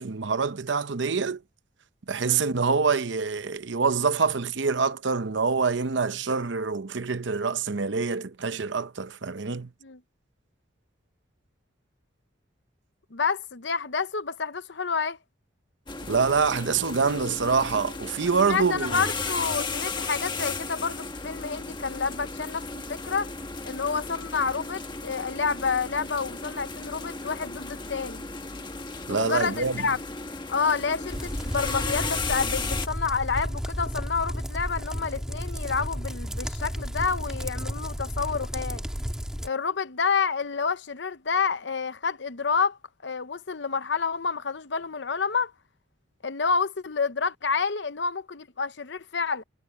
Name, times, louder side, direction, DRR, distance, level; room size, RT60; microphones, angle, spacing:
voice 1, 0.0-1.4 2.1-9.7 16.1-19.0 29.1-29.9, right 5 dB, 70° right, 0.8 m, -26 dB
voice 2, 13.1-15.2 18.4-23.3 23.6-28.2 29.1-30.0 30.5-38.8 39.4-45.5 46.2-49.4, left 5 dB, 65° left, 0.8 m, -29 dB
sound 1, 15.9-32.9, left 3 dB, 25° left, 1.3 m, -35 dB
sound 2, 31.1-39.5, equal, 5° right, 1.6 m, -33 dB
head